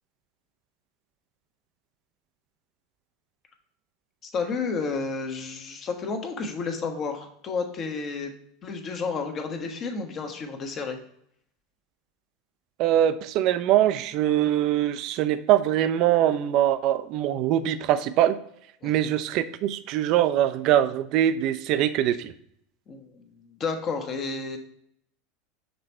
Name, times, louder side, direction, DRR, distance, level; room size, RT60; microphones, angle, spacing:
voice 1, 4.2-8.3 8.6-11.0 18.8-19.0 22.9-24.6, left 4 dB, 40° left, 5 dB, 1.1 m, -31 dB
voice 2, 12.8-18.4 18.8-22.3, right 11 dB, 55° right, 12 dB, 0.4 m, -23 dB
6.6 x 3.3 x 4.3 m, 0.70 s
hypercardioid pair, 80°, 0 cm